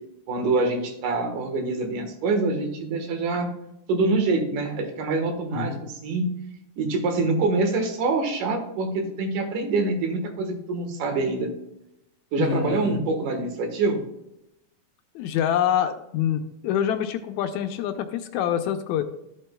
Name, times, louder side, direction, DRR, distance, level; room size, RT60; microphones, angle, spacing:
voice 1, 0.3-3.5 3.9-6.3 6.8-11.5 12.3-14.0, right 3 dB, 85° right, 4 dB, 2.9 m, -25 dB
voice 2, 5.5-5.8 12.4-13.0 15.2-19.0, left 9 dB, 75° left, 8 dB, 1.9 m, -26 dB
13.0 x 7.7 x 2.2 m, 0.87 s
omnidirectional pair, 3.6 m